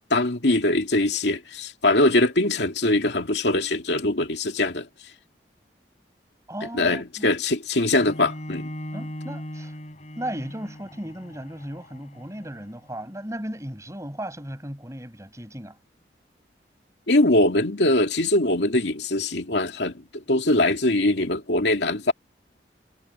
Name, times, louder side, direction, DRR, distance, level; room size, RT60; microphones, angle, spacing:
voice 1, 0.1-4.9 6.7-8.7 17.1-22.1, left 2 dB, 80° left, 2.5 m, -22 dB
voice 2, 6.5-7.3 8.9-9.7 10.2-15.8, right 1 dB, 15° right, 6.5 m, -36 dB
Bowed string instrument, 7.9-13.1, equal, 40° left, 5.0 m, -39 dB
head